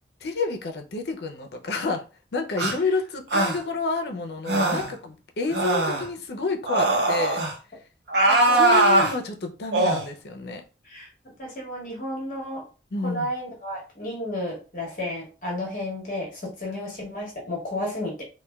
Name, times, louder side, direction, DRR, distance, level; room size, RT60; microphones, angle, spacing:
voice 1, 0.2-2.0 2.3-7.4 8.5-10.6 12.9-13.3, left 3 dB, 70° left, 0.5 m, -29 dB
sound 1, 2.6-2.8 3.3-3.6 4.5-4.9 5.5-6.1 6.7-7.5 8.1-9.1 9.7-10.0, right 2 dB, 75° right, 0.6 m, -21 dB
voice 2, 8.1-8.8 10.8-11.1 11.4-12.6 13.0-18.2, left 1 dB, 45° left, 0.8 m, -32 dB
3.1 x 2.2 x 2.2 m
head